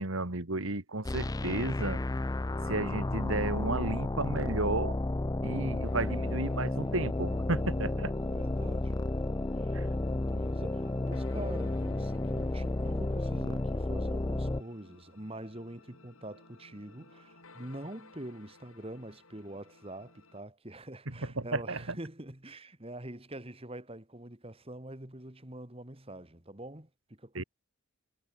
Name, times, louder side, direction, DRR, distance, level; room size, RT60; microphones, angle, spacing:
voice 1, 0.0-2.0 2.7-5.0 5.4-8.1 9.7-9.9 21.4-22.0 27.3-27.4, right 2 dB, 70° right, 2.1 m, -33 dB
sound 1, 1.0-14.6, left 2 dB, 15° left, 0.4 m, -32 dB
sound 2, 5.8-20.4, left 3 dB, 80° left, 7.1 m, -58 dB
voice 2, 8.3-9.1 9.5-10.0 10.3-27.4, right 1 dB, 25° right, 2.1 m, -45 dB
head